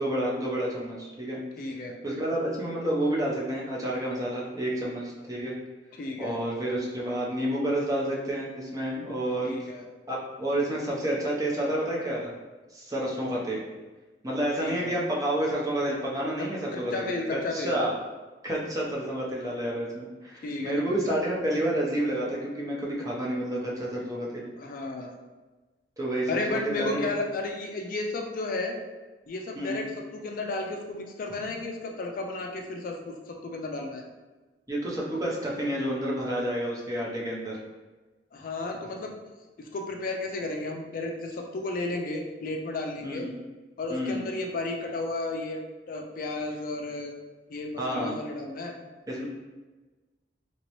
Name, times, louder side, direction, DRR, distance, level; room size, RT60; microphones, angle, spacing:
voice 1, 0.0-1.4 2.0-5.6 6.2-9.5 10.1-12.3 12.7-13.7 14.2-17.9 18.4-24.5 26.0-27.1 29.6-29.9 34.7-37.6 43.0-43.3 43.9-44.2 47.8-48.2 49.1-49.2, right 1 dB, 20° right, -4 dB, 0.6 m, -29 dB
voice 2, 1.6-2.0 5.9-6.4 9.4-9.8 14.6-15.0 16.7-17.8 20.4-21.2 24.6-25.2 26.3-28.7 29.3-29.9 30.1-34.0 38.3-39.1 39.6-43.2 43.8-47.1 47.5-48.7, left 2 dB, 50° left, 2 dB, 0.4 m, -33 dB
3.0 x 2.8 x 2.9 m, 1.2 s
head